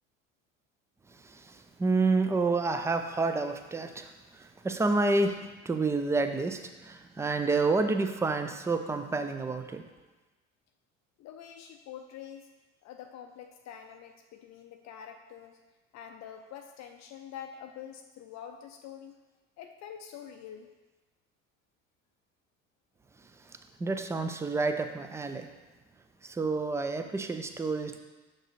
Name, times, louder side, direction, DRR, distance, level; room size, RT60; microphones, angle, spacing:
voice 1, 1.2-9.8 23.8-25.5 26.2-28.0, right 3 dB, 5° right, 7 dB, 0.4 m, -29 dB
voice 2, 11.2-12.5 12.8-15.6 15.9-19.2 19.6-20.7, left 9 dB, 45° left, 5 dB, 0.6 m, -46 dB
6.5 x 6.3 x 3.1 m, 1.2 s
figure-of-eight pair, 65°, 39 cm